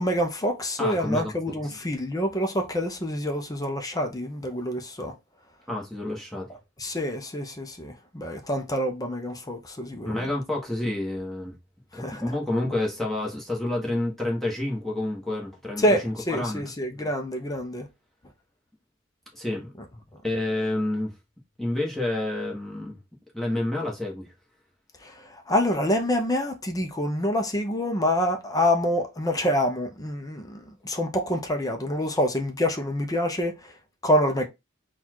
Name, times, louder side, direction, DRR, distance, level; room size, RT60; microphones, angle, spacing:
voice 1, 0.0-5.2 6.8-10.3 11.9-12.3 15.8-17.9 25.0-33.8 34.0-34.5, equal, 20° left, 0.7 m, -27 dB
voice 2, 0.8-1.3 5.7-6.5 10.0-11.5 11.9-16.6 19.3-19.7 20.2-21.1 21.6-23.0 23.3-24.3, left 1 dB, ahead, 1.2 m, -29 dB
4.1 x 2.4 x 4.3 m
head